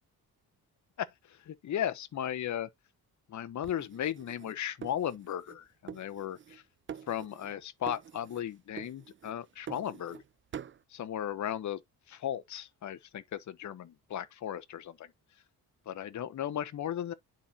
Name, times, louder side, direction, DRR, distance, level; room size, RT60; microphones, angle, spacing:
voice 1, 1.0-2.7 3.3-6.6 7.1-10.2 10.9-11.8 12.1-15.1 15.9-17.1, left 10 dB, 50° left, 0.9 m, -36 dB
sound 1, 3.6-5.6 5.9-6.6 6.9-7.6 7.9-8.5 8.8-10.2 10.5-10.8, right 8 dB, 30° right, 0.5 m, -46 dB
11.0 x 4.4 x 2.7 m
cardioid pair, 100°, 38 cm